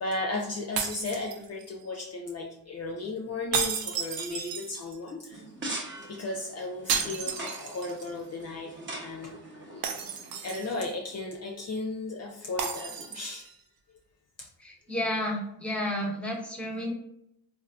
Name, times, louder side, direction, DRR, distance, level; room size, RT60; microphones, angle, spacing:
voice 1, 0.0-5.4 6.1-9.4 9.7-9.9 10.4-13.5 14.4-14.5, left 2 dB, 45° left, 1 dB, 0.5 m, -35 dB
sound 1, 0.8-1.8 3.5-5.1 6.9-8.1 8.4-8.5 9.8-10.9 12.6-13.5, right 6 dB, 70° right, 0.6 m, -33 dB
sound 2, 5.3-10.8, right 2 dB, 30° right, 0.9 m, -42 dB
voice 2, 14.6-16.9, left 1 dB, 5° left, -1 dB, 1.0 m, -31 dB
3.3 x 2.6 x 2.4 m, 0.78 s
cardioid pair, 60°, 37 cm